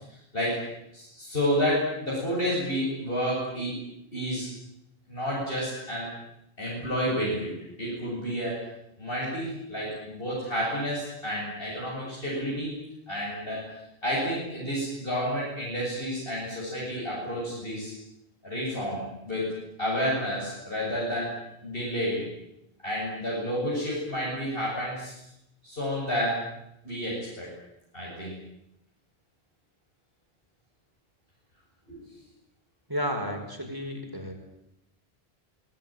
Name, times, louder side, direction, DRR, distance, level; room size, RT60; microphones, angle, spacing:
voice 1, 0.9-3.7 4.1-4.5 5.1-6.1 6.6-7.5 7.8-8.7 9.0-12.7 13.1-13.6 14.0-17.9 18.4-19.5 19.8-21.3 21.6-22.3 22.8-25.1 25.6-26.4 26.8-27.5 27.9-28.3 31.9-32.0, equal, 65° left, -6 dB, 8.5 m, -30 dB
voice 2, 32.9-34.3, equal, 20° right, 3 dB, 5.2 m, -32 dB
27.5 x 20.0 x 9.2 m, 0.82 s
omnidirectional pair, 1.0 m